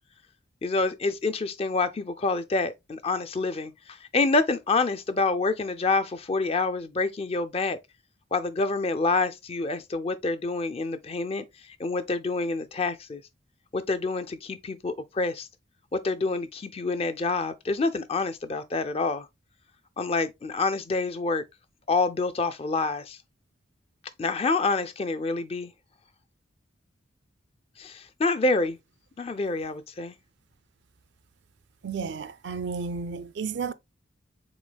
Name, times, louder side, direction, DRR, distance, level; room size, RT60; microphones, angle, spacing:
voice 1, 0.6-7.8 8.3-13.2 13.7-15.5 15.9-19.3 20.0-21.4 21.9-23.2 24.2-25.7 27.8-28.8 29.2-30.1, left 3 dB, 30° left, 0.4 m, -27 dB
voice 2, 31.8-33.7, right 5 dB, 55° right, 0.4 m, -32 dB
6.1 x 3.9 x 2.2 m
head